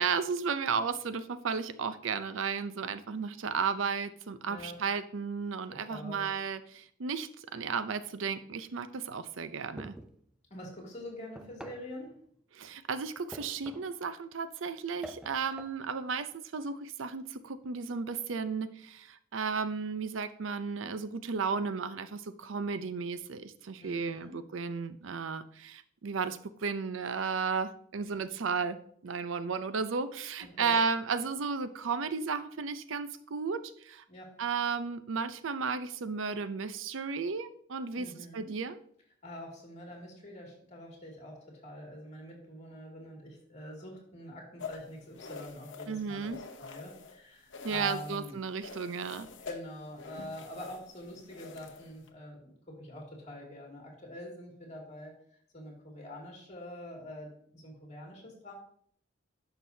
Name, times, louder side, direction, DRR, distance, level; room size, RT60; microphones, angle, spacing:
voice 1, 0.0-10.0 12.5-28.8 29.0-34.0 34.4-38.8 45.9-46.4 47.6-49.3, right 5 dB, 90° right, 13 dB, 0.5 m, -34 dB
voice 2, 4.4-4.8 5.7-6.3 10.5-12.2 23.8-24.4 30.5-30.8 34.1-34.4 38.0-38.5 39.2-48.4 49.4-55.1 55.5-58.5, left 1 dB, 35° left, -1 dB, 2.4 m, -45 dB
sound 1, 9.8-10.2 11.4-11.9 13.3-14.0 15.0-15.8, right 1 dB, 5° right, 0.3 m, -46 dB
sound 2, 44.6-47.2 47.5-48.3 48.6-52.1, left 4 dB, 70° left, 0.8 m, -46 dB
10.5 x 6.0 x 2.7 m, 0.63 s
head